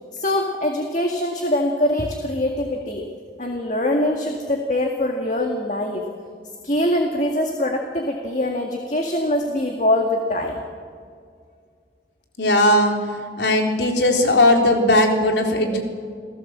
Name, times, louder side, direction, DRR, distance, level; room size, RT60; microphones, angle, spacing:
voice 1, 0.1-3.1 3.4-6.0 6.6-10.6, left 1 dB, 40° left, 2 dB, 1.9 m, -23 dB
voice 2, 12.4-13.0 13.4-15.9, left 1 dB, 75° left, 2 dB, 3.8 m, -17 dB
29.0 x 18.0 x 7.5 m, 2.1 s
head